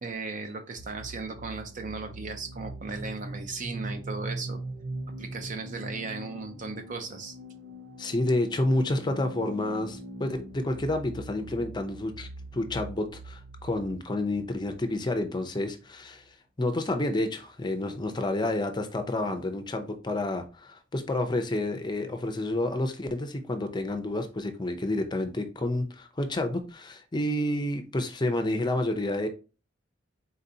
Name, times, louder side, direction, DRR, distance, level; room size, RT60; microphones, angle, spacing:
voice 1, 0.0-4.6 5.2-7.4, right 4 dB, 45° right, 0.5 m, -36 dB
sound 1, 0.8-16.3, right 1 dB, 85° right, 0.6 m, -42 dB
voice 2, 8.0-16.2 16.6-29.3, left 1 dB, 25° left, 0.5 m, -29 dB
4.1 x 4.0 x 2.7 m
head